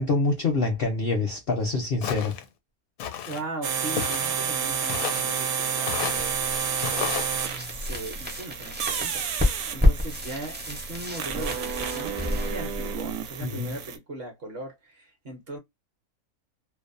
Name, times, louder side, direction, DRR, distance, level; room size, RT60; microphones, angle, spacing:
voice 1, 0.0-2.3 13.4-13.8, left 3 dB, 60° left, 0.6 m, -26 dB
Walk footsteps, 2.0-2.5 3.0-3.4 4.0-4.5 4.9-5.3 5.9-6.3 6.8-7.3, left 9 dB, 80° left, 1.0 m, -32 dB
voice 2, 3.3-6.4 6.9-7.2 7.7-9.3 9.7-15.6, right 2 dB, 50° right, 0.8 m, -38 dB
sound 1, 3.6-14.0, right 7 dB, 75° right, 1.0 m, -30 dB
sound 2, 5.9-13.7, left 1 dB, 15° right, 0.3 m, -29 dB
2.6 x 2.0 x 2.4 m
omnidirectional pair, 1.5 m